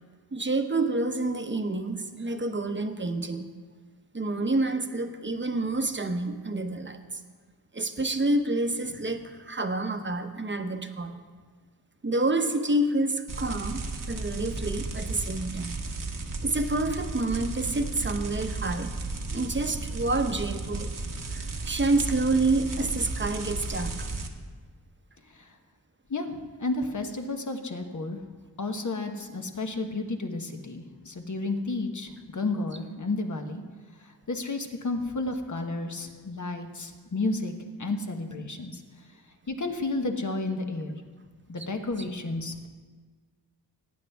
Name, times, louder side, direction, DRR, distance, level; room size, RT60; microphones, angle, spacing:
voice 1, 0.3-3.5 4.1-7.0 7.7-11.1 12.0-13.8 14.1-15.8 16.4-18.9 19.3-20.9 21.3-24.1, right 2 dB, 30° right, 6 dB, 1.0 m, -28 dB
sound 1, 13.3-24.3, right 3 dB, 55° right, 1.2 m, -34 dB
voice 2, 26.1-28.2 28.6-33.6 34.0-37.5 37.8-38.8 39.5-41.0 41.5-42.7, left 2 dB, 45° left, 5 dB, 1.2 m, -32 dB
18.0 x 9.3 x 3.5 m, 1.5 s
wide cardioid pair, 60°, 39 cm